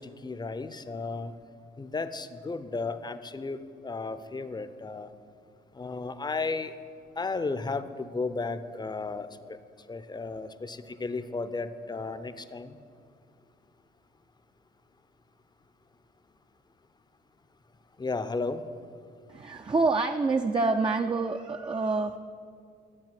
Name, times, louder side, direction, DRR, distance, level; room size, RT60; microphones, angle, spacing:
voice 1, 0.0-1.3 1.8-5.1 5.7-6.7 7.2-9.6 9.9-12.8 18.0-18.6, left 3 dB, 20° left, 11 dB, 0.7 m, -34 dB
voice 2, 19.3-22.2, right 3 dB, 25° right, 5 dB, 0.5 m, -27 dB
12.0 x 7.2 x 7.6 m, 2.2 s
cardioid pair, 90°, 20 cm